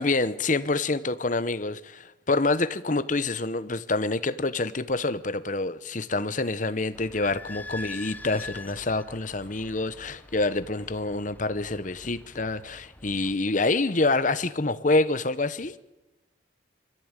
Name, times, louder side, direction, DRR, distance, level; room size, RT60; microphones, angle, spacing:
voice 1, 0.0-15.8, left 2 dB, 40° left, 0.9 m, -27 dB
Idling / Squeak, 6.9-13.3, left 2 dB, 10° left, 0.6 m, -44 dB
24.5 x 14.0 x 9.0 m
head